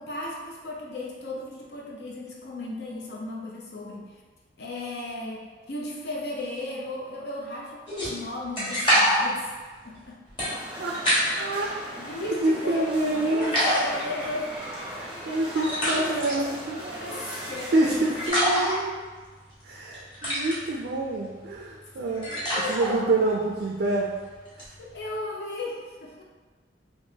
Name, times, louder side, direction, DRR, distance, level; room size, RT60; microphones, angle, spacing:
voice 1, 0.0-4.2 4.6-9.5 9.8-10.2 12.0-14.5 15.5-16.2 17.0-18.6 22.5-23.3 24.8-26.2, left 2 dB, 65° left, -3 dB, 0.6 m, -35 dB
sound 1, 7.9-11.7 12.1-13.1 13.4-25.2, equal, 30° left, 1.3 m, -28 dB
sound 2, 10.4-18.3, right 1 dB, 5° right, 0.7 m, -38 dB
voice 2, 11.4-11.7 12.4-13.8 14.9-16.8 17.7-19.0 19.6-24.1 24.6-24.7, right 2 dB, 60° right, -2 dB, 0.4 m, -27 dB
3.6 x 2.9 x 2.7 m, 1.4 s
head